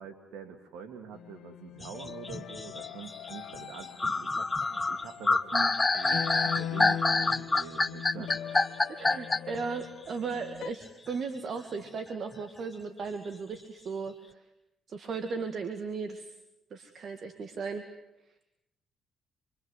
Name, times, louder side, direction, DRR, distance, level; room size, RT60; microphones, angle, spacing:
voice 1, 0.0-8.6, right 7 dB, 90° right, 4 dB, 2.1 m, -45 dB
sound 1, 1.1-10.7, left 10 dB, 75° left, 1.3 m, -40 dB
sound 2, 1.8-9.6, left 3 dB, 20° left, 1.1 m, -27 dB
voice 2, 8.9-14.4 14.9-16.3 16.7-17.8, right 5 dB, 55° right, 8 dB, 2.2 m, -36 dB
27.5 x 24.5 x 8.2 m, 0.86 s
cardioid pair, 90°, 0 cm